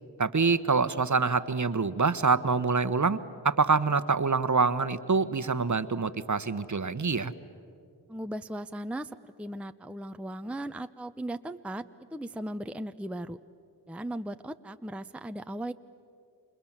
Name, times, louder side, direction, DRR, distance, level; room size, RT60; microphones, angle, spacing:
voice 1, 0.2-3.2 3.4-7.3, right 4 dB, 40° right, 13 dB, 1.2 m, -25 dB
voice 2, 8.1-11.8 12.1-13.4 13.9-15.7, right 1 dB, 5° right, 9 dB, 0.7 m, -37 dB
30.0 x 26.0 x 7.4 m, 2.5 s
cardioid pair, 40°, 47 cm